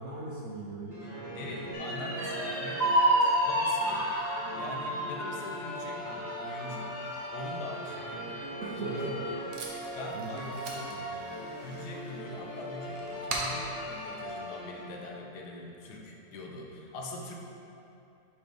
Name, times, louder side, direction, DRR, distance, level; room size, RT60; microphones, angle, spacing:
voice 1, 0.0-1.6 8.6-9.3 10.1-11.2, right 2 dB, 60° right, -4 dB, 0.8 m, -40 dB
sound 1, 0.9-15.2, right 1 dB, 15° right, 1.0 m, -40 dB
voice 2, 1.3-2.9 3.4-4.1 4.5-7.0 7.3-8.4 8.7-9.2 9.9-10.9 11.6-17.3, left 1 dB, 80° left, 0 dB, 1.3 m, -42 dB
sound 2, 1.7-9.4 9.8-9.9 10.3-11.0, right 1 dB, 45° left, 1.6 m, -31 dB
Packing tape duct tape, 8.6-15.1, right 2 dB, 80° right, 1.4 m, -43 dB
7.1 x 3.1 x 5.1 m, 2.8 s
omnidirectional pair, 1.7 m